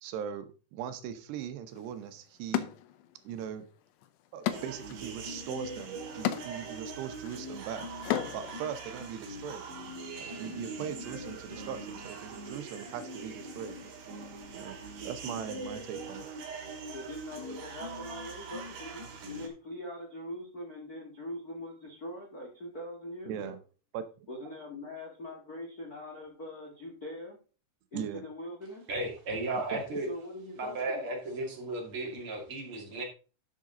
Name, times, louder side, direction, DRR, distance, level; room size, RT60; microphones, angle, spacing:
voice 1, 0.0-2.7 3.2-3.6 4.3-7.9 8.3-9.6 10.2-13.8 14.5-14.8 15.0-16.2 23.3-23.6 23.9-24.3 27.9-28.2 29.7-29.8, right 9 dB, 85° right, 3.1 m, -40 dB
sound 1, 1.7-1.8 2.5-3.5 3.8-8.6, left 12 dB, 90° left, 3.0 m, -36 dB
sound 2, 4.5-19.5, right 3 dB, 60° right, 2.9 m, -42 dB
voice 2, 16.9-19.0 19.3-23.5 24.3-27.4 27.9-28.9 30.0-31.2, left 1 dB, 40° left, 1.3 m, -42 dB
voice 3, 28.9-30.1 30.6-33.0, right 2 dB, 40° right, 2.7 m, -34 dB
11.5 x 6.6 x 3.8 m
omnidirectional pair, 4.8 m